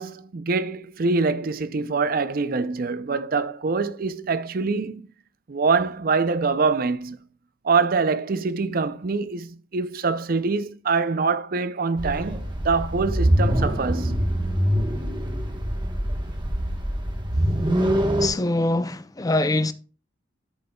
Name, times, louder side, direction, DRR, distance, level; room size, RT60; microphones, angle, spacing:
voice 1, 0.0-5.1 5.5-7.2 7.6-14.2, right 4 dB, 50° right, 0.5 m, -24 dB
sound 1, 12.0-18.3, equal, 25° right, 1.2 m, -24 dB
voice 2, 18.2-19.7, left 2 dB, 20° left, 0.4 m, -23 dB
13.0 x 6.7 x 2.3 m
head